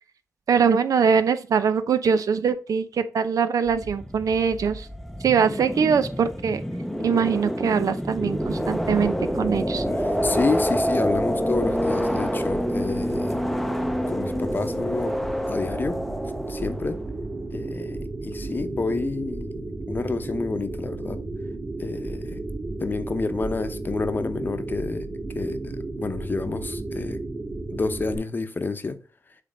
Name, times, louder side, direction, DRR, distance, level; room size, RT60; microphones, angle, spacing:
voice 1, 0.5-4.9 5.2-6.6 7.0-9.8, right 6 dB, 80° right, 0.7 m, -22 dB
sound 1, 3.7-17.1, equal, ahead, 0.6 m, -28 dB
sound 2, 8.2-28.2, right 2 dB, 45° right, 2.8 m, -33 dB
voice 2, 10.0-13.4 14.1-15.2 15.5-16.0 16.5-17.0 17.5-21.2 21.8-22.4 22.8-25.1 25.3-27.2 27.7-29.0, left 3 dB, 35° left, 0.8 m, -29 dB
7.3 x 3.4 x 5.1 m
wide cardioid pair, 120°, 6 cm